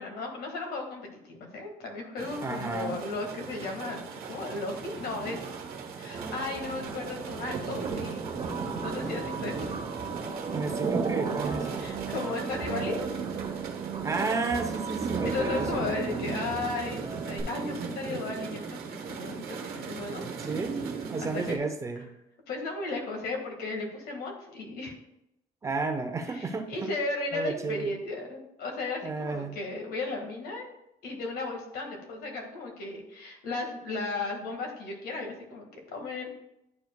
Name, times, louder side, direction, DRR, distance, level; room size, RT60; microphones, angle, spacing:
voice 1, 0.0-5.6 5.9-8.2 8.8-9.7 11.1-11.4 11.8-13.1 15.2-20.3 21.2-21.6 22.5-24.9 26.3-30.7 31.0-36.3, left 3 dB, 90° left, 2 dB, 1.7 m, -35 dB
sound 1, 2.2-21.6, right 5 dB, 80° right, 1.0 m, -36 dB
voice 2, 2.4-3.0 9.5-9.7 10.5-11.8 14.0-15.9 20.4-20.8 21.1-22.1 25.6-26.9 27.3-27.9 29.0-29.6, right 3 dB, 20° right, 6 dB, 0.5 m, -32 dB
sound 2, 6.1-17.4, right 5 dB, 35° right, 0.9 m, -38 dB
10.5 x 4.7 x 2.2 m, 0.83 s
cardioid pair, 175°, 16 cm